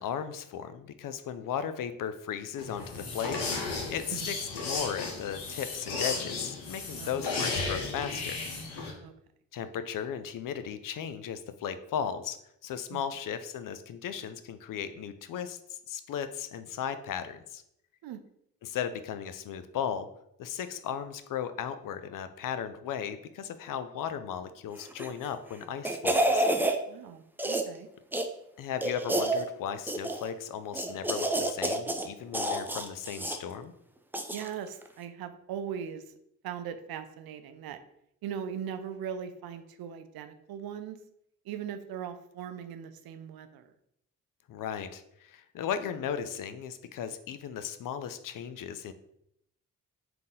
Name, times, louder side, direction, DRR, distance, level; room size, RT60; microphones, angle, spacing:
voice 1, 0.0-8.4 9.5-12.4 12.6-17.6 18.6-20.1 20.4-26.5 28.6-33.7 44.5-48.9, left 8 dB, 55° left, 11 dB, 0.5 m, -36 dB
sound 1, 2.6-8.9, left 3 dB, 80° left, 0.9 m, -34 dB
sound 2, 24.9-25.3 25.6-26.8 27.4-27.8 28.1-28.3 28.8-29.4 29.9-30.3 30.7-32.1 32.3-33.4 34.1-34.5 34.8-34.9, right 1 dB, 5° right, 0.4 m, -29 dB
voice 2, 26.9-27.9 34.3-36.0 36.4-37.8 38.2-41.0 41.5-43.7, right 8 dB, 65° right, 9 dB, 0.6 m, -39 dB
3.7 x 2.8 x 3.7 m, 0.77 s
hypercardioid pair, 40°, 39 cm